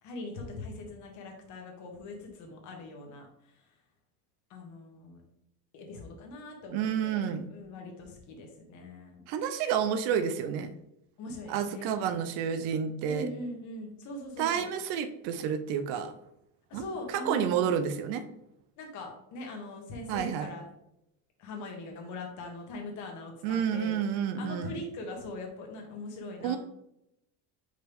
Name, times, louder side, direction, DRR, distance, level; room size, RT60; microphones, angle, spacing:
voice 1, 0.0-3.8 4.5-5.2 5.7-9.2 11.2-12.0 13.0-14.7 16.7-17.5 18.8-20.7 21.4-24.0 24.3-26.6, left 2 dB, 45° left, 2 dB, 1.6 m, -41 dB
voice 2, 6.7-7.5 9.3-10.7 11.5-13.3 14.4-16.1 16.7-16.8 17.3-18.2 20.1-20.5 23.4-24.7 26.4-26.6, right 8 dB, 70° right, 10 dB, 0.7 m, -30 dB
5.6 x 5.2 x 3.5 m, 0.82 s
cardioid pair, 180°, 40 cm